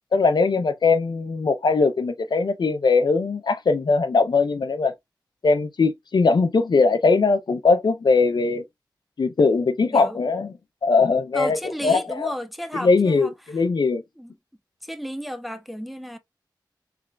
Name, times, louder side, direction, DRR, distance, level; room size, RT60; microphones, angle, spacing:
voice 1, 0.1-4.9 5.4-8.6 9.2-10.5 10.8-11.6 11.8-12.3 12.8-14.0, left 4 dB, 70° left, 0.5 m, -20 dB
voice 2, 11.3-13.3 14.2-14.3 14.8-16.2, equal, ahead, 0.6 m, -33 dB
3.8 x 3.3 x 2.2 m
cardioid pair, 50°, 8 cm